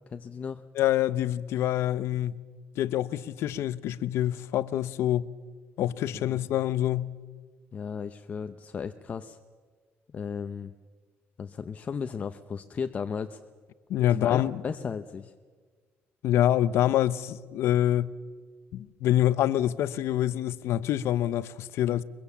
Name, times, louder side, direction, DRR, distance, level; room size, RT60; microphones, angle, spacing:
voice 1, 0.1-0.7 6.1-6.5 7.7-9.4 10.1-10.7 11.4-13.4 14.1-15.3, left 6 dB, 30° left, 0.7 m, -35 dB
voice 2, 0.8-2.4 2.8-5.3 5.8-7.2 13.9-14.6 16.2-18.1 18.7-22.0, left 12 dB, 75° left, 0.8 m, -26 dB
23.0 x 23.0 x 7.2 m
cardioid pair, 165°, 5 cm